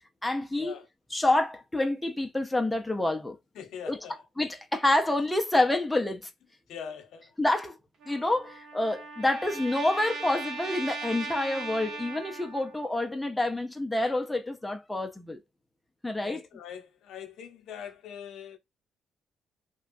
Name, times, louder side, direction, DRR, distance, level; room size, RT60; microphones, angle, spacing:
voice 1, 0.2-0.8 1.1-3.4 3.9-4.1 4.4-6.3 7.4-7.8 8.1-15.4 16.0-16.5, left 2 dB, 10° left, 0.6 m, -28 dB
voice 2, 3.6-4.1 6.7-7.2 16.2-18.6, left 8 dB, 80° left, 0.8 m, -42 dB
Trumpet, 8.0-12.8, right 3 dB, 70° right, 0.9 m, -39 dB
2.9 x 2.3 x 2.6 m
cardioid pair, 90°, 0 cm